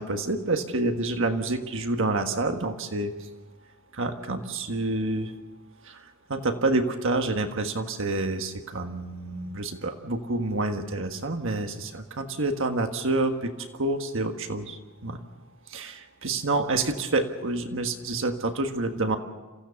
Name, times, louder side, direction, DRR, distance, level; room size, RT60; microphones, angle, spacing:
voice 1, 0.0-3.1 3.9-5.3 5.8-6.0 6.3-13.5 13.8-15.2 15.7-19.2, right 2 dB, 60° right, 6 dB, 1.6 m, -28 dB
27.0 x 16.0 x 7.1 m, 1.2 s
head